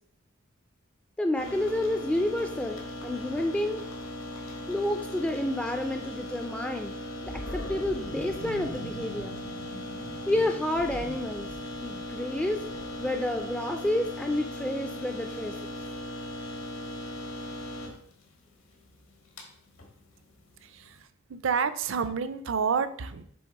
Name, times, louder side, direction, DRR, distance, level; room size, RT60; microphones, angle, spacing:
voice 1, 1.2-3.8 4.7-6.9 7.2-9.4 10.3-11.5 11.8-12.6 13.0-15.7, left 1 dB, 5° left, 4 dB, 0.3 m, -29 dB
sound 1, 1.4-21.0, left 1 dB, 80° left, 1.5 m, -39 dB
Animal, 7.3-14.4, equal, 65° left, 0.7 m, -43 dB
voice 2, 20.6-21.0 21.3-23.2, right 6 dB, 65° right, 12 dB, 0.5 m, -29 dB
7.0 x 3.6 x 4.7 m, 0.65 s
head